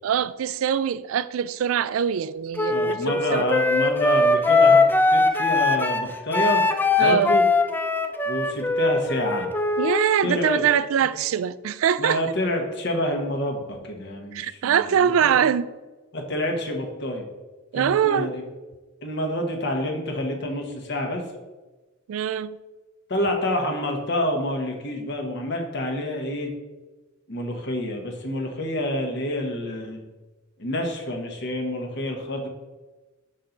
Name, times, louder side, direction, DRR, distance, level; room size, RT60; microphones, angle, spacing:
voice 1, 0.0-3.5 7.0-7.4 9.8-12.2 14.3-15.7 17.7-18.3 22.1-22.6, right 8 dB, 85° right, 0.3 m, -23 dB
Wind instrument woodwind instrument, 2.6-10.1, left 3 dB, 10° left, 0.4 m, -21 dB
voice 2, 2.7-4.8 5.1-6.6 7.0-7.4 8.3-9.5 10.2-10.6 11.0-11.1 12.0-15.4 16.1-17.3 17.7-18.4 19.0-21.2 23.1-26.5 27.3-30.0 30.6-32.5, left 1 dB, 55° left, 1.2 m, -28 dB
6.4 x 5.8 x 3.9 m
head